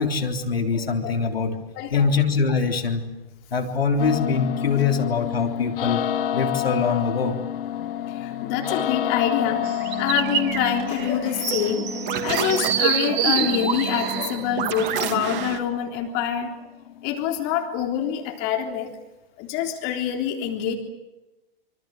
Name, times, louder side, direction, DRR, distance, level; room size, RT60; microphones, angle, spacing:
voice 1, 0.0-1.5 1.9-3.0 3.5-6.1 6.3-7.4, left 5 dB, 85° left, 3 dB, 3.5 m, -23 dB
voice 2, 0.7-1.2 1.8-2.1 8.1-9.6 10.0-16.5 17.0-18.9 19.4-20.7, left 9 dB, 40° left, 3 dB, 3.6 m, -26 dB
sound 1, 4.0-17.9, left 11 dB, 65° left, 1.5 m, -30 dB
sound 2, 9.6-15.6, right 8 dB, 35° right, 2.9 m, -26 dB
26.5 x 25.0 x 7.6 m, 1.0 s
hypercardioid pair, 110°, 29 cm